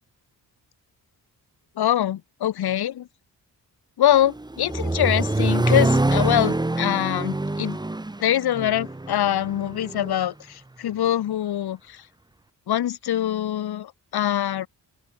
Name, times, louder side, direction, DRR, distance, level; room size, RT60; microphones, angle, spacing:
voice 1, 1.8-3.1 4.0-7.8 8.2-12.0 12.7-14.7, left 11 dB, 80° left, 1.4 m, -24 dB
Accelerating revving vroom, 4.1-10.1, right 2 dB, 10° right, 2.1 m, -25 dB
open air
wide cardioid pair, 170°, 38 cm